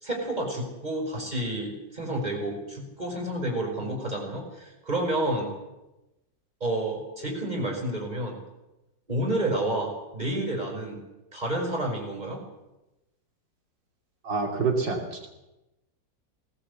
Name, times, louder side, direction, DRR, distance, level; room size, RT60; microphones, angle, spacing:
voice 1, 0.0-5.5 6.6-8.4 9.1-11.0 11.3-12.4, right 1 dB, 20° right, 1 dB, 5.7 m, -30 dB
voice 2, 14.2-15.3, right 4 dB, 80° right, 1 dB, 3.5 m, -27 dB
19.5 x 18.5 x 8.2 m, 0.99 s
omnidirectional pair, 2.0 m